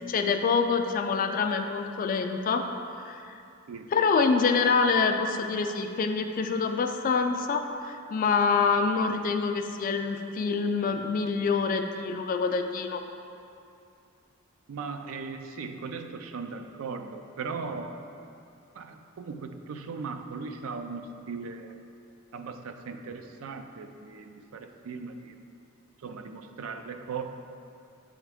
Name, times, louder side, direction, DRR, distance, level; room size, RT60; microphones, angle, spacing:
voice 1, 0.1-2.6 3.0-3.4 3.9-13.0, left 5 dB, 40° left, 6 dB, 0.3 m, -26 dB
voice 2, 14.7-18.0 18.7-21.8 22.3-25.4 26.0-27.2, right 4 dB, 75° right, 7 dB, 0.4 m, -38 dB
8.0 x 3.5 x 3.4 m, 2.6 s
head